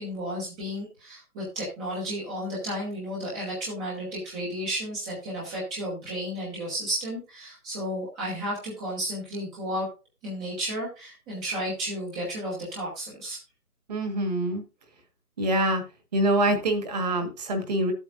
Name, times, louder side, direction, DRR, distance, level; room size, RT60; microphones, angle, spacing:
voice 1, 0.0-9.9 10.2-13.4, equal, 5° right, -6 dB, 1.0 m, -33 dB
voice 2, 13.9-14.6 15.4-15.8 16.1-17.9, right 1 dB, 25° right, 7 dB, 1.6 m, -25 dB
11.5 x 8.1 x 2.6 m, 0.30 s
figure-of-eight pair, 160°, 45 cm